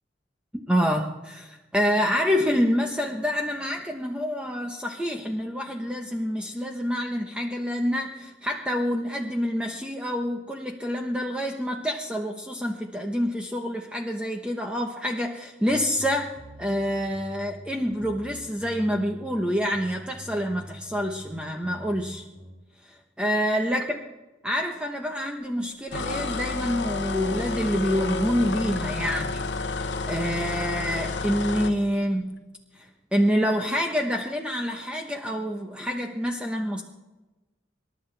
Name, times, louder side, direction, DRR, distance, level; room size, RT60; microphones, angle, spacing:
voice 1, 0.7-16.3 16.6-22.2 22.8-24.0 24.4-29.4 30.1-32.4 32.7-36.8, equal, 5° right, 2 dB, 1.0 m, -27 dB
sound 1, 15.7-22.5, equal, 55° right, 3.4 m, -45 dB
sound 2, 25.9-31.8, left 3 dB, 70° left, 1.1 m, -30 dB
27.0 x 11.5 x 3.4 m, 1.1 s
head